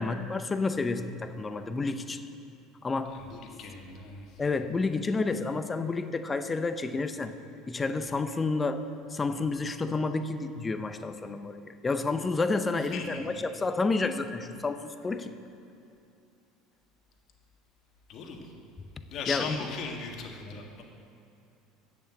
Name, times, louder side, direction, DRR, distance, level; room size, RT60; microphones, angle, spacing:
voice 1, 0.0-2.2 2.8-3.2 4.4-7.3 7.7-8.8 9.1-15.4 19.3-19.6, left 3 dB, 20° left, 10 dB, 0.7 m, -30 dB
voice 2, 3.1-4.3 12.9-13.2 18.1-18.4 19.1-20.8, left 5 dB, 55° left, 2 dB, 1.7 m, -38 dB
8.3 x 7.1 x 8.6 m, 2.6 s
hypercardioid pair, 85°, 0 cm